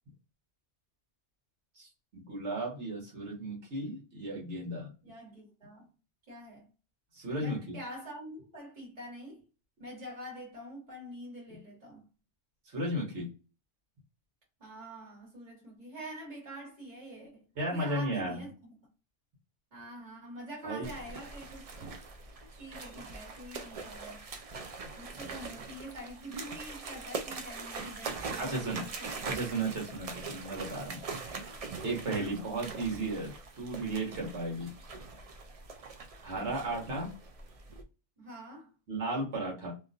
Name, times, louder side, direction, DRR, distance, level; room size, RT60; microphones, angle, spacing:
voice 1, 1.8-4.9 7.1-7.8 12.7-13.3 17.6-18.4 20.6-20.9 28.4-28.9 29.2-31.0 31.8-34.7 36.2-37.1 38.9-39.7, right 2 dB, 80° right, 1.5 m, -35 dB
voice 2, 5.0-5.9 6.3-6.7 7.4-9.4 9.8-12.1 14.6-18.7 19.7-22.0 22.6-24.2 24.9-29.3 36.3-36.9 38.2-38.7, equal, 40° right, 1.6 m, -46 dB
sound 1, 20.8-37.8, right 4 dB, 55° right, 0.4 m, -42 dB
2.9 x 2.4 x 2.5 m
omnidirectional pair, 1.1 m